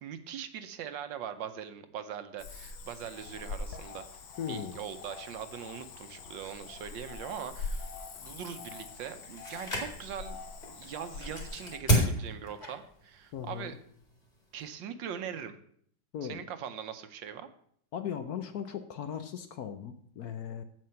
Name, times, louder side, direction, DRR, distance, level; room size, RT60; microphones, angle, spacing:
voice 1, 0.0-7.9 8.2-10.4 10.8-13.7 14.5-15.5 16.2-17.5, right 8 dB, 75° right, 10 dB, 1.4 m, -41 dB
Cricket / Frog, 2.4-11.8, left 4 dB, 90° left, 1.8 m, -43 dB
voice 2, 4.4-4.8 13.3-13.7 16.1-16.4 17.9-20.6, left 8 dB, 65° left, 9 dB, 1.0 m, -38 dB
sound 1, 6.3-14.7, equal, 20° left, 2.2 m, -35 dB
7.9 x 7.6 x 5.7 m, 0.64 s
omnidirectional pair, 2.1 m